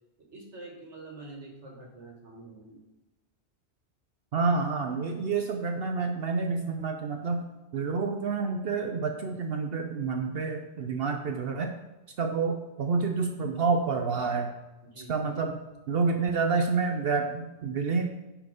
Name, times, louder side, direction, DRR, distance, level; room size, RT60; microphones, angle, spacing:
voice 1, 0.2-2.9 14.8-15.3, right 2 dB, 85° right, 0 dB, 2.1 m, -46 dB
voice 2, 4.3-7.4 7.7-11.7 12.2-14.5 15.1-15.6 15.9-18.1, right 4 dB, 65° right, 4 dB, 0.9 m, -28 dB
10.0 x 4.6 x 5.1 m, 1.0 s
omnidirectional pair, 1.1 m